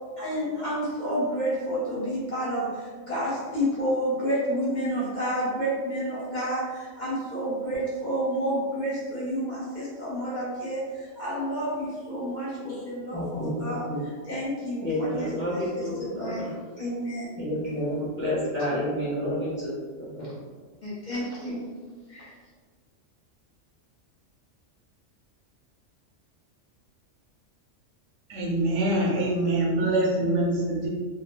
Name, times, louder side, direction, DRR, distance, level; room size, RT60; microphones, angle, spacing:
voice 1, 0.2-15.6 16.0-17.3 20.2-20.3 20.8-21.6 22.1-22.3, equal, 40° left, -8 dB, 0.8 m, -30 dB
voice 2, 13.1-14.0 14.8-16.5 17.4-20.3, left 1 dB, 15° left, -9 dB, 0.4 m, -30 dB
voice 3, 28.3-30.9, right 1 dB, 70° right, -3 dB, 0.9 m, -24 dB
2.4 x 2.1 x 3.0 m, 1.5 s
omnidirectional pair, 1.3 m